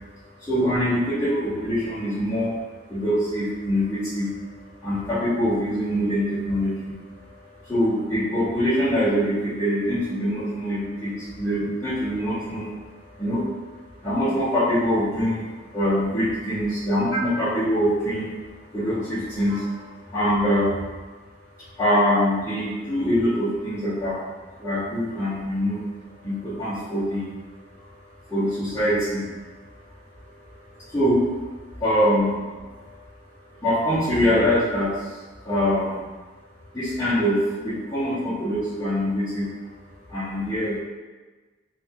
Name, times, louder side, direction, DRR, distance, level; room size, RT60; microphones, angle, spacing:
voice 1, 0.4-2.5 2.9-4.6 4.8-12.7 13.0-13.6 14.0-18.3 18.7-20.8 21.8-24.2 24.6-25.8 26.2-27.3 27.8-28.0 28.3-29.3 30.7-31.3 31.8-33.0 33.6-36.1 36.7-39.5 40.1-40.8, equal, 15° left, -16 dB, 0.7 m, -24 dB
2.7 x 2.3 x 2.7 m, 1.3 s
head